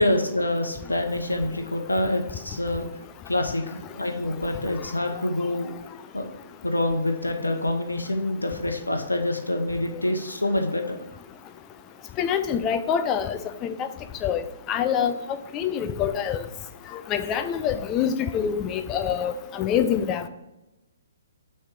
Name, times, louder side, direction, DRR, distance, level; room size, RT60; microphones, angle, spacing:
voice 1, 0.0-2.9 3.3-5.7 6.1-6.3 6.6-11.0, left 1 dB, 80° left, 4 dB, 0.8 m, -26 dB
voice 2, 12.2-13.9 14.2-14.4 14.7-15.1 15.5-16.4 17.1-20.3, left 8 dB, 20° left, 9 dB, 0.4 m, -25 dB
6.4 x 3.4 x 4.4 m, 0.99 s
figure-of-eight pair, 125°, 0 cm